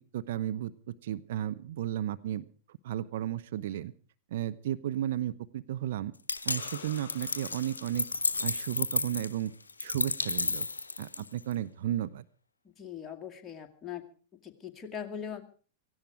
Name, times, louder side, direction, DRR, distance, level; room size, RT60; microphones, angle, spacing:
voice 1, 0.1-3.9 4.3-6.1 6.4-8.1 8.4-9.5 9.8-10.7 11.0-12.3, right 12 dB, 60° right, 13 dB, 0.7 m, -34 dB
sound 1, 6.3-11.5, left 3 dB, 85° left, 0.7 m, -32 dB
sound 2, 6.4-9.2 12.0-12.1, left 8 dB, 60° left, 1.0 m, -52 dB
voice 2, 12.8-14.0 14.4-15.4, left 8 dB, 20° left, 3 dB, 2.1 m, -40 dB
17.5 x 15.5 x 4.9 m, 0.39 s
figure-of-eight pair, 100°, 0 cm